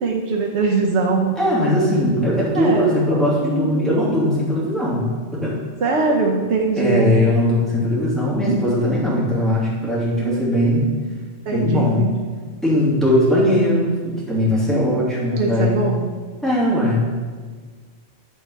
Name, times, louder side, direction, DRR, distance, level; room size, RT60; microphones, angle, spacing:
voice 1, 0.0-1.4 2.5-2.9 3.4-4.0 5.8-7.2 8.5-8.9 10.2-10.4 10.7-11.1 11.5-12.3 15.2-16.1, right 4 dB, 85° right, 0 dB, 1.1 m, -22 dB
voice 2, 1.4-5.1 5.3-5.5 6.8-10.8 11.5-12.1 12.6-15.8 16.4-17.2, left 1 dB, ahead, -8 dB, 2.7 m, -19 dB
9.4 x 4.6 x 5.5 m, 1.5 s
omnidirectional pair, 1.1 m